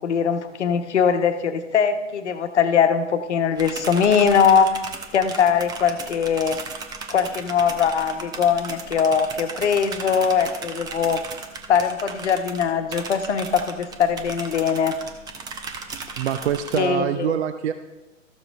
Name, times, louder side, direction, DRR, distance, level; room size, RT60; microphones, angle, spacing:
voice 1, 0.0-4.8 5.1-6.6 7.1-11.2 11.7-15.0 16.7-17.4, left 7 dB, 60° left, 9 dB, 1.1 m, -21 dB
sound 1, 3.6-16.8, right 4 dB, 10° right, 0.6 m, -36 dB
voice 2, 16.2-17.7, right 9 dB, 60° right, 9 dB, 0.6 m, -24 dB
13.5 x 6.8 x 3.7 m, 1.1 s
figure-of-eight pair, 115°, 38 cm